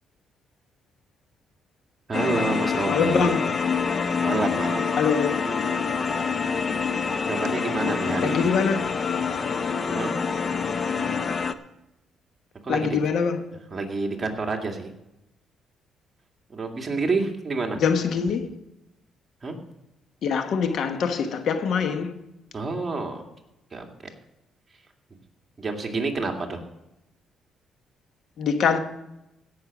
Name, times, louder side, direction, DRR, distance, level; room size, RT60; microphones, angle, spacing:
sound 1, 2.1-11.5, left 5 dB, 40° left, 0.8 m, -26 dB
voice 1, 2.1-3.3 4.2-4.9 7.3-8.5 9.9-10.1 12.6-13.0 13.7-14.9 16.5-17.8 19.4-19.6 22.5-23.2 23.7-23.9 25.6-26.6, right 3 dB, 30° right, 2.2 m, -28 dB
voice 2, 2.9-3.5 5.0-5.4 8.1-8.9 12.7-13.4 17.8-18.5 20.2-22.1 28.4-28.8, left 6 dB, 70° left, 1.1 m, -24 dB
16.5 x 6.5 x 6.1 m
cardioid pair, 90°, 0 cm